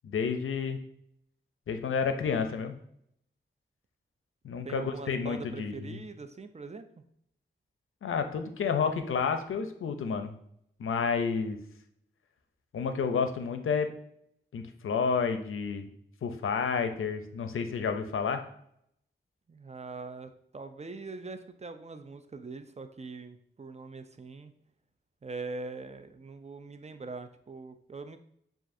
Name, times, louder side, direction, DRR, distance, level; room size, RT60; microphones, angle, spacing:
voice 1, 0.0-0.8 1.7-2.8 4.4-6.0 8.0-10.3 10.8-11.6 12.7-13.9 14.5-15.9 16.2-18.4, left 5 dB, 90° left, 7 dB, 0.5 m, -30 dB
voice 2, 4.6-6.9 19.5-24.5 25.2-28.2, right 3 dB, 35° right, 9 dB, 0.4 m, -42 dB
7.3 x 2.5 x 2.6 m, 0.70 s
cardioid pair, 45°, 20 cm